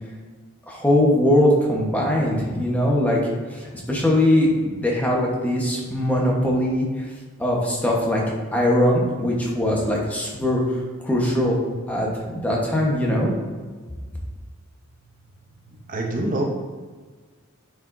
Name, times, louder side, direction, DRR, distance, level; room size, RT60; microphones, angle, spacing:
voice 1, 0.7-3.2 3.5-7.1 7.4-8.2 8.5-11.6 11.9-13.3, left 1 dB, 5° left, -3 dB, 1.2 m, -21 dB
voice 2, 15.9-16.4, right 1 dB, 40° right, 0 dB, 0.8 m, -24 dB
9.2 x 5.0 x 2.7 m, 1.5 s
head